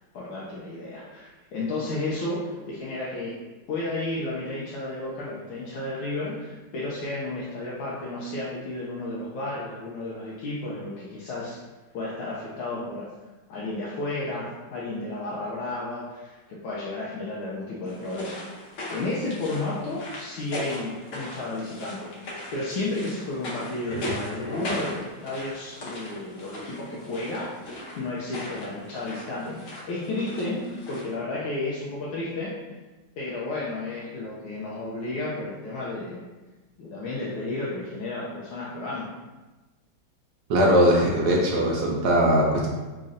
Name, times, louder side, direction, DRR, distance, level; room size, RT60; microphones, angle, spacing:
voice 1, 0.1-3.4 3.7-11.6 11.9-13.1 13.5-27.6 28.0-32.6 33.2-36.2 36.8-39.1, left 2 dB, 85° left, -6 dB, 1.5 m, -32 dB
sound 1, 17.9-31.1, left 1 dB, 65° left, 0.8 m, -38 dB
voice 2, 40.5-42.7, equal, 75° right, -2 dB, 0.9 m, -20 dB
4.0 x 3.0 x 2.5 m, 1.2 s
omnidirectional pair, 2.2 m